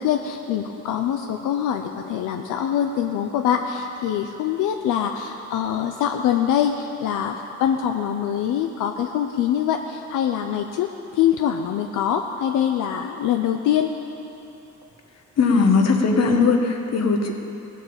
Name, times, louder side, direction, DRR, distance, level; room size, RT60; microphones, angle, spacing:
voice 1, 0.0-10.9 11.1-13.9, left 9 dB, 90° left, 4 dB, 0.6 m, -24 dB
voice 2, 15.4-17.3, left 4 dB, 55° left, 2 dB, 1.6 m, -19 dB
17.5 x 7.4 x 7.1 m, 2.9 s
cardioid pair, 90°, 30 cm